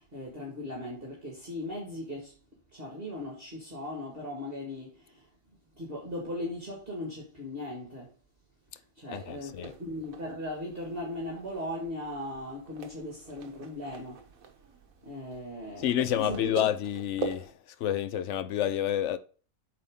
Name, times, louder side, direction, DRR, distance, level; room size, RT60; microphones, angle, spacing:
voice 1, 0.0-2.4 2.7-5.3 5.8-8.1 9.0-14.3 15.0-16.6, left 1 dB, 35° right, 2.1 m, -38 dB
voice 2, 9.1-9.7 15.8-17.5 17.8-19.2, left 11 dB, 70° left, 0.7 m, -29 dB
sound 1, 9.1-17.5, right 6 dB, 60° right, 1.3 m, -44 dB
8.2 x 4.5 x 3.6 m
omnidirectional pair, 1.8 m